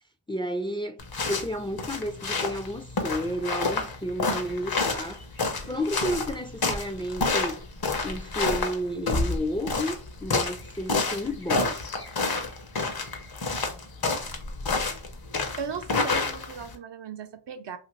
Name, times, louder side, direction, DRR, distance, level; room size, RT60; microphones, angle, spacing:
voice 1, 0.3-1.0 1.3-5.2 5.7-7.6 8.0-11.8, equal, 15° left, 0.3 m, -31 dB
sound 1, 1.0-16.7, left 3 dB, 55° left, 0.7 m, -29 dB
voice 2, 15.6-17.8, right 6 dB, 70° right, 0.5 m, -37 dB
2.8 x 2.5 x 3.1 m
wide cardioid pair, 70°, 44 cm